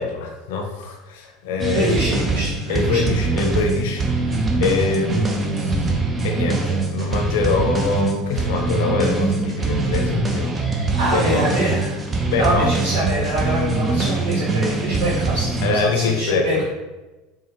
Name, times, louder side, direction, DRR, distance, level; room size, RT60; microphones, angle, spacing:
voice 1, 0.0-2.0 2.7-4.3 4.6-10.8 11.1-11.5 12.2-12.7 15.6-16.6, left 4 dB, 70° left, 3 dB, 0.6 m, -24 dB
sound 1, 1.6-15.8, right 3 dB, 25° right, 0.6 m, -23 dB
voice 2, 1.7-3.1 10.9-12.0 12.3-16.6, right 1 dB, 70° right, -6 dB, 0.9 m, -24 dB
4.1 x 2.4 x 3.0 m, 1.1 s
hypercardioid pair, 80°, 0 cm